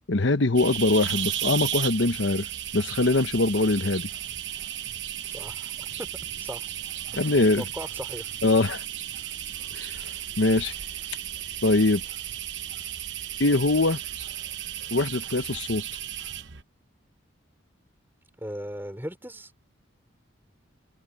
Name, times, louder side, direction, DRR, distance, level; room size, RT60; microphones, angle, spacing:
voice 1, 0.1-2.5 2.7-4.1 7.2-7.6 8.4-8.8 9.7-9.9 10.4-10.8 11.6-12.0 13.4-14.0 14.9-15.8, left 2 dB, 65° left, 1.0 m, -22 dB
sound 1, 0.5-16.6, right 11 dB, 60° right, 1.0 m, -34 dB
voice 2, 5.2-6.1 6.4-6.7 7.1-8.2 18.4-19.5, equal, 10° right, 4.6 m, -38 dB
head